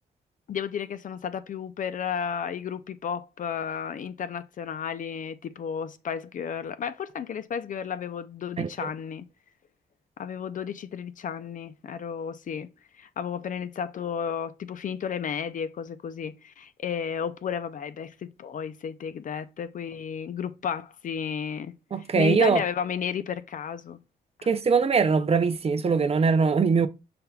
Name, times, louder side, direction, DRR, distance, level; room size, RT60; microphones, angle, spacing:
voice 1, 0.5-9.2 10.2-12.7 13.0-21.7 22.1-24.0 24.4-24.5, left 7 dB, 55° left, 0.4 m, -33 dB
voice 2, 8.6-8.9 21.9-22.6 24.5-26.9, right 5 dB, 40° right, 0.5 m, -22 dB
5.5 x 3.4 x 2.3 m
supercardioid pair, 60°, 16 cm